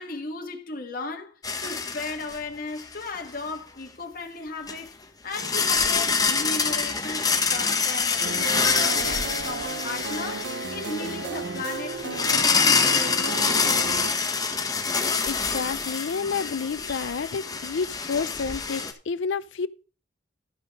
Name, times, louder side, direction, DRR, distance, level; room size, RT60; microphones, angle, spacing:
voice 1, 0.0-1.3 1.6-4.9 5.2-14.0, left 3 dB, 50° left, 1.3 m, -36 dB
sound 1, 1.4-2.4 2.8-2.9 4.7-4.8 5.3-18.9, left 5 dB, 20° left, 1.0 m, -26 dB
sound 2, 8.2-14.1, right 4 dB, 75° right, 0.8 m, -34 dB
voice 2, 15.2-19.7, left 5 dB, 85° left, 0.5 m, -30 dB
12.5 x 5.8 x 5.2 m
head